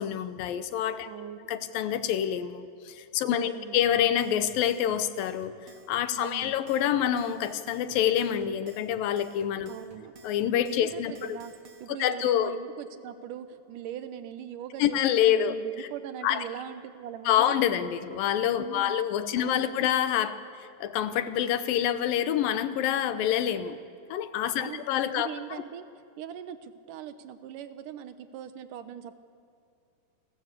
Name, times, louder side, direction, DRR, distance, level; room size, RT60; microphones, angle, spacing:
voice 1, 0.0-1.1 1.5-9.7 10.2-11.4 12.0-12.5 14.8-15.5 16.2-16.4 17.3-20.4 20.8-23.8 24.1-25.3, left 10 dB, 85° left, 12 dB, 2.8 m, -27 dB
voice 2, 1.1-1.5 3.3-3.8 6.2-6.5 9.7-10.1 10.8-11.5 11.8-17.6 18.6-19.0 19.4-19.8 24.6-24.9 25.2-29.1, right 9 dB, 75° right, 11 dB, 2.5 m, -41 dB
sound 1, 3.9-11.9, right 4 dB, 45° right, 3.0 m, -53 dB
29.5 x 20.0 x 8.4 m, 2.5 s
omnidirectional pair, 4.0 m